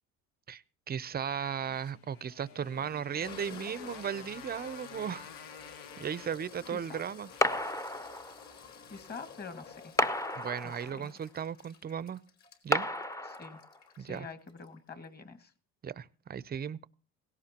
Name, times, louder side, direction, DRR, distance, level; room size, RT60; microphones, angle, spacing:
voice 1, 0.5-5.3 6.0-7.3 10.4-12.2 12.6-12.9 14.0-14.3 15.8-16.9, right 8 dB, 25° right, 0.6 m, -36 dB
Motorcycle, 1.4-7.7, left 8 dB, 75° left, 1.3 m, -50 dB
Toilet flush, 1.9-2.0 2.6-15.0, left 6 dB, 50° left, 4.2 m, -52 dB
sound 1, 7.4-8.5 10.0-11.1 12.7-13.8, left 1 dB, 10° left, 0.7 m, -32 dB
voice 2, 8.9-9.9 10.6-11.1 13.3-13.6 14.0-15.5, left 4 dB, 25° left, 1.9 m, -46 dB
17.5 x 17.0 x 2.9 m
cardioid pair, 110°, 36 cm